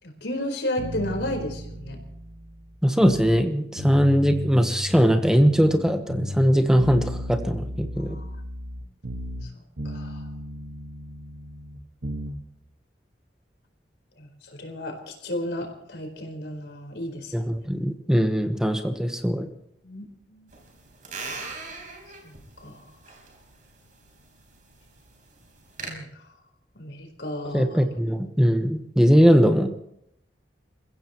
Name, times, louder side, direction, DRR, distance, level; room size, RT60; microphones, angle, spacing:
voice 1, 0.0-2.0 8.0-8.3 9.4-9.5 9.8-10.3 14.2-17.5 19.8-20.0 20.3-20.5 22.2-22.9 25.9-26.1 26.8-27.8, left 1 dB, 85° left, 2 dB, 4.3 m, -33 dB
sound 1, 0.8-3.4 3.8-5.8 6.1-9.5 9.8-12.4, equal, 80° right, 1.6 m, -35 dB
voice 2, 2.8-8.2 17.3-19.5 27.5-29.7, equal, 5° right, 6 dB, 1.0 m, -20 dB
sound 2, 20.5-25.9, right 4 dB, 50° right, 4.1 m, -41 dB
29.5 x 15.5 x 3.1 m, 0.74 s
head